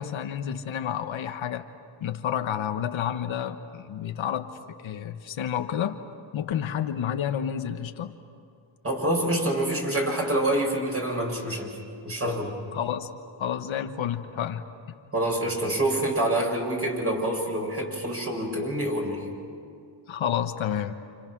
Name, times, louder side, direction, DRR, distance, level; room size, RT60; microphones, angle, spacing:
voice 1, 0.0-1.6 2.0-6.0 6.3-8.2 12.7-13.1 13.4-14.6 20.1-20.9, left 9 dB, 70° left, 6 dB, 1.4 m, -30 dB
voice 2, 8.8-11.7 12.0-12.6 15.1-19.3, right 1 dB, 25° right, 0 dB, 7.0 m, -26 dB
29.5 x 29.0 x 6.2 m, 2.5 s
cardioid pair, 110°, 49 cm